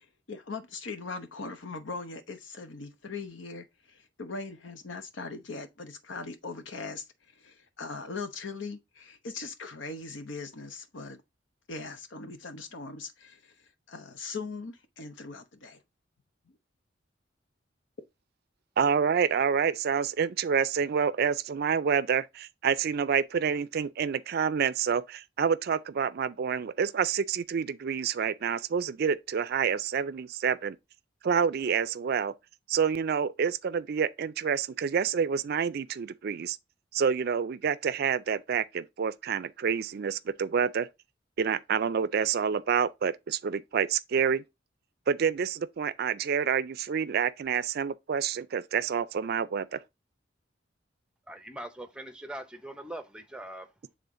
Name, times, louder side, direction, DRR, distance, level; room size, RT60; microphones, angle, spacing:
voice 1, 0.0-7.1 7.4-11.2 11.7-13.5 13.9-15.8, left 4 dB, 80° left, 0.9 m, -40 dB
voice 2, 18.8-30.8 31.2-32.3 32.7-36.6 36.9-40.9 41.4-44.4 45.1-49.8, right 7 dB, 55° right, 0.4 m, -28 dB
voice 3, 51.3-53.7, right 1 dB, 5° right, 0.6 m, -41 dB
6.9 x 3.7 x 3.7 m
head